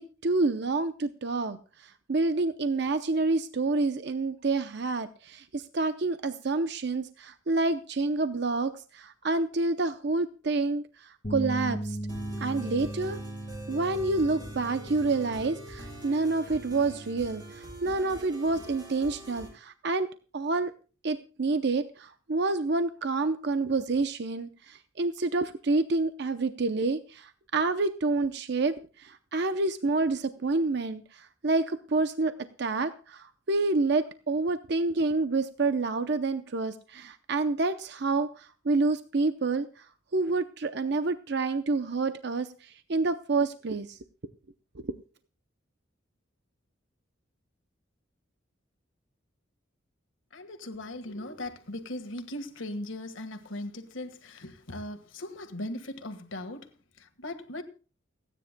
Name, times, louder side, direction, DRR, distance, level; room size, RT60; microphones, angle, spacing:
voice 1, 0.0-12.0 12.4-13.2 13.7-20.1 20.3-20.7 21.0-32.3 32.6-39.9 40.1-44.0 44.8-44.9, right 3 dB, 60° right, 0.7 m, -28 dB
sound 1, 11.2-17.5, right 1 dB, 40° left, 1.9 m, -38 dB
sound 2, 12.1-19.5, right 1 dB, 20° right, 7.6 m, -44 dB
voice 2, 50.3-57.6, left 1 dB, 80° left, 1.6 m, -39 dB
29.5 x 9.9 x 2.2 m
head